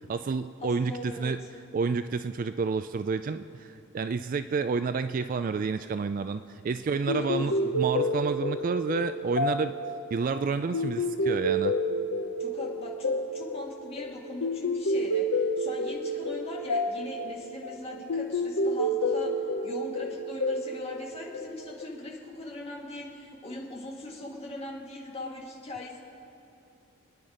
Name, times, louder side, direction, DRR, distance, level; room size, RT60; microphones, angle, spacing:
voice 1, 0.1-1.4 1.7-9.7 10.1-11.7, right 4 dB, 40° right, 11 dB, 0.3 m, -29 dB
voice 2, 0.6-1.5 7.1-7.7 12.4-26.0, left 1 dB, 30° left, -2 dB, 2.0 m, -40 dB
sound 1, 7.1-21.8, equal, 80° left, 0.9 m, -29 dB
26.0 x 9.6 x 5.0 m, 2.9 s
head